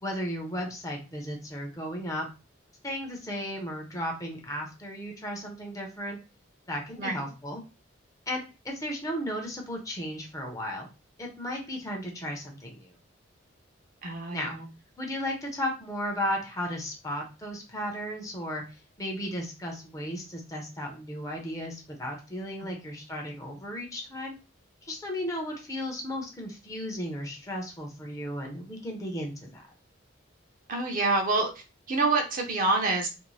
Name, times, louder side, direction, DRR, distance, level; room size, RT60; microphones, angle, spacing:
voice 1, 0.0-2.3 2.8-6.2 6.7-7.6 8.3-10.9 11.2-12.9 14.3-14.6 15.0-18.6 19.0-24.3 24.8-29.6, equal, 15° left, 1 dB, 0.6 m, -35 dB
voice 2, 14.0-14.7 22.6-22.9 30.7-31.5 31.9-33.1, right 3 dB, 45° right, 3 dB, 0.5 m, -27 dB
2.5 x 2.0 x 3.1 m, 0.30 s
head